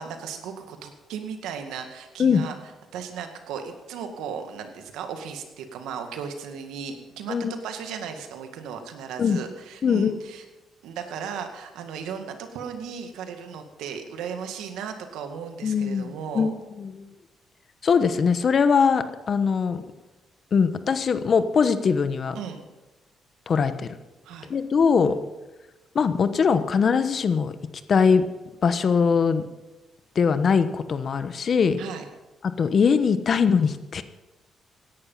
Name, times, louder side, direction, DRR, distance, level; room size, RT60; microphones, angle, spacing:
voice 1, 0.0-2.6 2.9-10.4 10.8-16.5 22.3-22.7 24.2-24.5 25.0-25.2 31.8-32.0, right 7 dB, 90° right, 6 dB, 2.0 m, -36 dB
voice 2, 9.8-10.2 15.6-17.1 17.8-19.8 20.5-22.4 23.5-23.9 24.5-25.1 25.9-27.5 27.9-28.3 28.6-29.4 30.1-31.8 32.6-34.0, left 6 dB, 50° left, 11 dB, 1.1 m, -21 dB
17.0 x 11.0 x 5.7 m, 1.1 s
cardioid pair, 90°, 0 cm